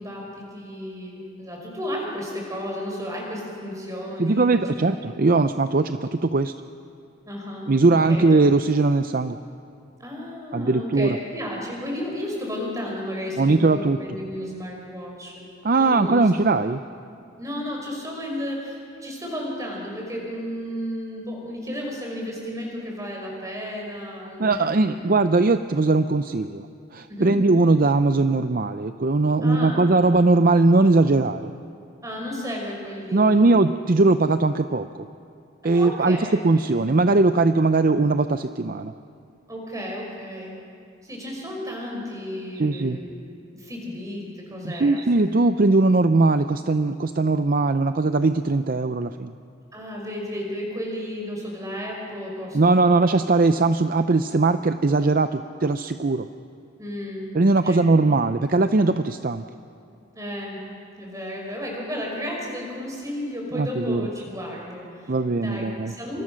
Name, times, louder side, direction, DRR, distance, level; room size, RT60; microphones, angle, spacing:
voice 1, 0.0-5.0 7.3-8.2 10.0-15.5 15.8-16.2 17.4-25.1 27.1-27.3 29.4-29.9 32.0-33.6 35.6-36.4 39.5-40.5 41.0-43.2 43.5-45.0 49.7-53.0 56.8-57.3 57.6-57.8 58.1-58.2 60.1-60.6 61.0-65.1 65.4-66.2, equal, 15° right, -1 dB, 5.6 m, -33 dB
voice 2, 4.2-6.5 7.7-9.4 10.5-11.2 13.4-14.0 15.6-16.8 24.4-26.7 26.9-31.5 33.1-35.1 35.6-38.9 42.6-43.0 44.6-49.3 52.5-56.3 57.3-59.4 63.5-64.1 65.1-65.9, right 3 dB, 45° right, 10 dB, 0.5 m, -20 dB
28.5 x 26.0 x 6.4 m, 2.4 s
head